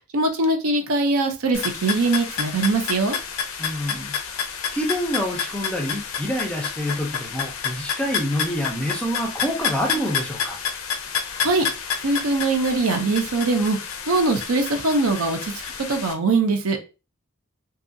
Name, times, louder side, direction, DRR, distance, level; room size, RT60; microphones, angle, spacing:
voice 1, 0.1-3.2 11.4-11.6 12.0-13.8 14.1-15.5 15.9-16.8, right 3 dB, 90° right, 5 dB, 0.6 m, -21 dB
sound 1, 1.5-16.1, left 7 dB, 75° left, 0.4 m, -29 dB
voice 2, 3.6-4.1 4.7-10.6, equal, 5° left, 1 dB, 0.4 m, -27 dB
2.6 x 2.3 x 2.6 m, 0.31 s
head